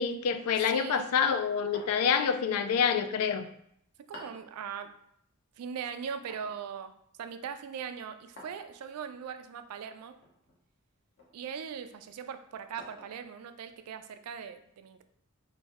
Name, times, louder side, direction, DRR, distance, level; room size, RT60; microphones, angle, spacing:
voice 1, 0.0-3.5, left 7 dB, 85° left, 10 dB, 0.3 m, -27 dB
voice 2, 0.6-1.1 4.1-4.9 5.6-6.9 7.2-10.1 11.3-15.0, right 7 dB, 85° right, 9 dB, 0.3 m, -40 dB
sound 1, 1.7-2.3 4.1-4.5 6.3-6.6 8.4-8.7 10.2-10.6 11.2-11.4 12.8-13.2, equal, 50° left, 0.7 m, -49 dB
3.2 x 2.6 x 3.5 m, 0.72 s
head